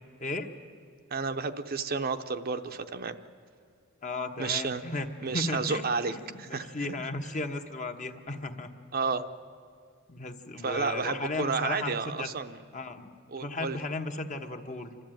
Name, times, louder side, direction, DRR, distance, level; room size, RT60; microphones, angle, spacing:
voice 1, 1.1-3.2 4.4-4.8 5.2-6.7 8.9-9.3 10.6-12.6 13.3-13.8, right 4 dB, 45° right, 8 dB, 0.8 m, -31 dB
voice 2, 4.0-5.1 5.3-5.8 6.1-8.7 10.1-12.3 12.7-13.1 13.4-14.9, left 2 dB, 40° left, 5 dB, 1.2 m, -35 dB
28.5 x 13.0 x 9.1 m, 2.3 s
head